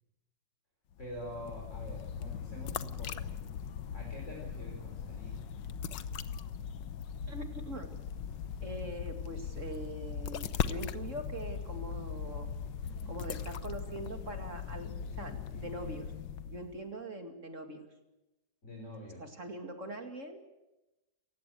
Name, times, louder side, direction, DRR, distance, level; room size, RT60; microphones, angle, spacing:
sound 1, 0.9-16.8, left 7 dB, 90° left, 1.7 m, -39 dB
voice 1, 1.0-3.3 3.9-5.4 18.6-19.3, equal, 40° left, -1 dB, 5.1 m, -45 dB
voice 2, 7.3-7.9 8.6-12.5 13.1-14.9 15.2-16.1 16.5-17.8 19.2-20.5, right 1 dB, 45° right, 5 dB, 2.7 m, -42 dB
28.0 x 16.0 x 7.9 m, 1.0 s
omnidirectional pair, 1.9 m